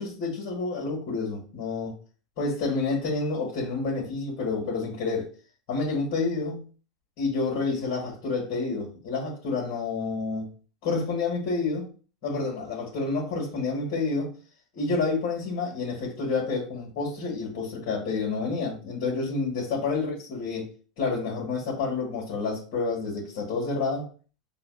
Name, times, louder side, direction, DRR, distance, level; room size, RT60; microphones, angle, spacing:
voice 1, 0.0-1.9 2.4-5.3 5.7-6.6 7.2-10.5 10.8-11.9 12.2-14.3 14.8-20.7 21.0-24.1, left 4 dB, 55° left, -4 dB, 1.8 m, -29 dB
6.8 x 2.4 x 2.3 m, 0.38 s
figure-of-eight pair, 85°, 3 cm